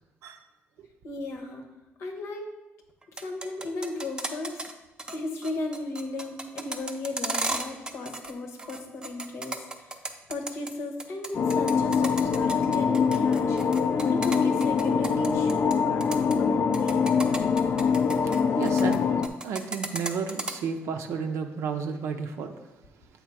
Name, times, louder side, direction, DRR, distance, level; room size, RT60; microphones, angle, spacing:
voice 1, 1.0-1.6 2.0-2.5 3.2-4.7 5.1-10.0 10.3-13.6 14.1-17.2, left 2 dB, 80° left, 3 dB, 1.0 m, -35 dB
sound 1, 3.0-4.7 5.0-5.2 5.4-8.3 8.6-10.7 11.0-15.7 16.0-16.3 16.7-19.0 19.2-20.5, right 2 dB, 15° right, 0.5 m, -34 dB
sound 2, 11.3-19.3, left 6 dB, 50° left, 0.3 m, -24 dB
voice 2, 18.2-19.1 19.4-22.5, right 6 dB, 85° right, 5 dB, 0.5 m, -32 dB
7.4 x 3.3 x 4.7 m, 1.0 s
cardioid pair, 115°, 5 cm